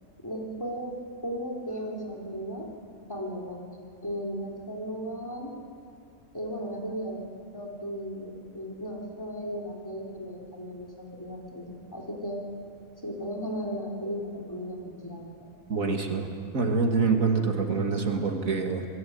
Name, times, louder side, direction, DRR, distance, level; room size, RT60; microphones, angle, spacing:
voice 1, 0.2-0.9 1.2-2.7 3.1-3.6 4.0-5.5 6.3-7.2 7.5-12.4 13.0-15.5, equal, 15° left, -1 dB, 4.0 m, -36 dB
voice 2, 15.7-16.3 16.5-18.9, right 4 dB, 85° right, 3 dB, 2.6 m, -25 dB
28.0 x 20.0 x 9.5 m, 2.5 s
omnidirectional pair, 1.4 m